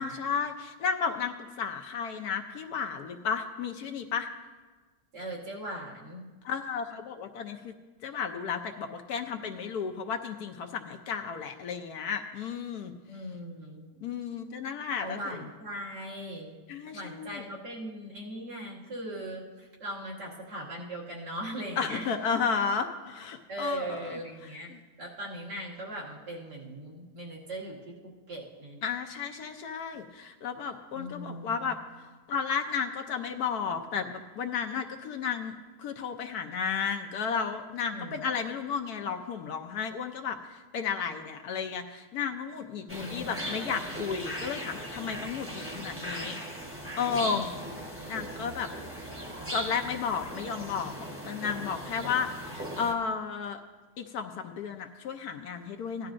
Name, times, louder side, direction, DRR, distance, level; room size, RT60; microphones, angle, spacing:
voice 1, 0.0-4.3 6.4-7.7 8.0-12.9 14.0-15.4 16.7-17.4 21.8-24.2 24.7-24.8 28.8-31.8 32.3-35.5 35.8-46.4 47.0-47.4 48.1-48.7 49.5-50.9 51.2-53.6 54.0-56.1, left 6 dB, 70° left, 5 dB, 1.1 m, -33 dB
voice 2, 5.1-6.3 13.1-13.9 15.0-16.6 16.9-22.1 23.5-24.7 25.0-28.8 30.9-31.8 37.9-38.2 43.0-43.4 47.2-47.6, right 1 dB, 80° right, -5 dB, 2.8 m, -39 dB
sound 1, 42.9-52.9, equal, 10° right, 0.8 m, -38 dB
16.5 x 11.5 x 2.5 m, 1.3 s
omnidirectional pair, 1.8 m